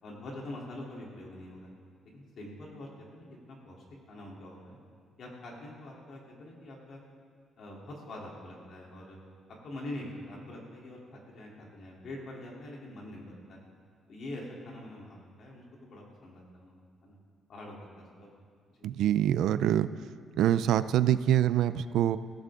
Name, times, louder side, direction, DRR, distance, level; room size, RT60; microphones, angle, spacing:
voice 1, 0.0-1.7 2.0-3.7 4.1-4.8 5.2-7.0 7.6-9.2 9.6-13.7 14.1-17.2 17.5-18.3 18.7-18.9, left 1 dB, 50° left, -3 dB, 3.4 m, -44 dB
voice 2, 18.8-19.9 20.4-22.2, right 11 dB, 75° right, 14 dB, 0.4 m, -25 dB
22.0 x 16.0 x 3.8 m, 2.2 s
cardioid pair, 175°, 0 cm